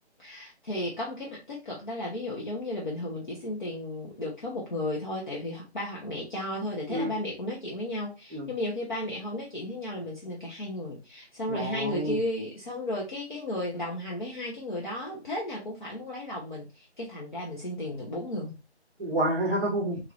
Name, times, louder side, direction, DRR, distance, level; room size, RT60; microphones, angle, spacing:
voice 1, 0.2-18.6, left 1 dB, 45° left, -4 dB, 0.9 m, -34 dB
voice 2, 11.5-12.2 19.0-20.0, right 1 dB, 15° right, -1 dB, 0.7 m, -28 dB
3.4 x 3.1 x 2.4 m, 0.26 s
figure-of-eight pair, 150°, 35 cm